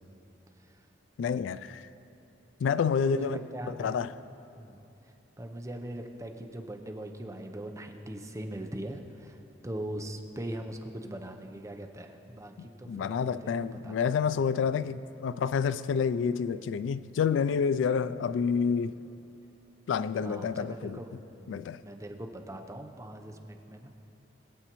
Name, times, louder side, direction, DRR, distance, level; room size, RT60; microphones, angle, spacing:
voice 1, 1.2-1.8 2.6-3.4 3.8-4.1 12.9-18.9 19.9-21.0 21.5-21.8, left 6 dB, 85° left, 0.3 m, -28 dB
voice 2, 3.0-4.0 4.6-4.8 5.4-9.4 9.6-13.5 13.8-14.1 20.2-23.9, right 1 dB, 15° right, 0.7 m, -41 dB
21.0 x 7.9 x 3.0 m
head